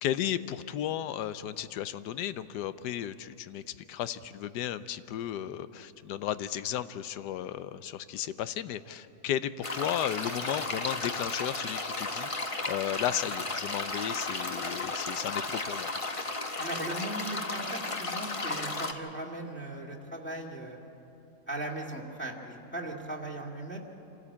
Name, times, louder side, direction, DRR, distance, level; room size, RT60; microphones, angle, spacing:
voice 1, 0.0-15.9, left 11 dB, 90° left, 14 dB, 1.3 m, -34 dB
sound 1, 9.6-18.9, left 3 dB, 25° left, 0.8 m, -34 dB
voice 2, 16.6-20.8 21.5-23.8, right 1 dB, 5° left, -3 dB, 2.0 m, -38 dB
26.5 x 13.5 x 8.4 m, 3.0 s
omnidirectional pair, 1.7 m